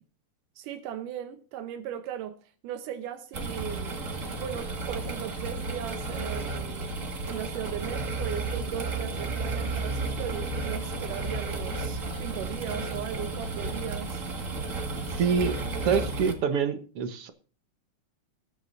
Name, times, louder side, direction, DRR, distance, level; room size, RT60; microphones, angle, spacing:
voice 1, 0.6-4.0 4.4-7.0 7.2-14.2, right 10 dB, 90° right, 2.5 m, -38 dB
sound 1, 3.3-16.3, right 3 dB, 30° right, 1.7 m, -33 dB
voice 2, 15.1-15.5 15.9-17.3, right 6 dB, 60° right, 1.7 m, -26 dB
20.0 x 9.6 x 2.6 m
omnidirectional pair, 3.6 m